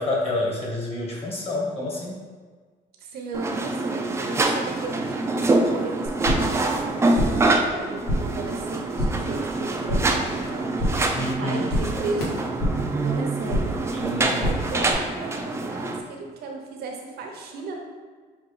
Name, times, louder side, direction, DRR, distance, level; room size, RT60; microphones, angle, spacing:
voice 1, 0.0-2.2 11.1-11.7 13.9-14.4, left 1 dB, 35° left, -3 dB, 1.3 m, -28 dB
voice 2, 3.0-13.8 14.4-17.8, right 3 dB, 70° right, 1 dB, 0.8 m, -35 dB
sound 1, 3.3-16.0, right 2 dB, 15° right, 0.4 m, -25 dB
sound 2, 6.1-6.6 6.9-7.5 7.8-8.4 8.7-9.3 9.6-10.3 10.5-11.2 11.4-12.9 13.2-13.9 14.1-14.9, equal, 65° left, 1.4 m, -28 dB
5.8 x 2.5 x 3.3 m, 1.5 s
cardioid pair, 110°, 17 cm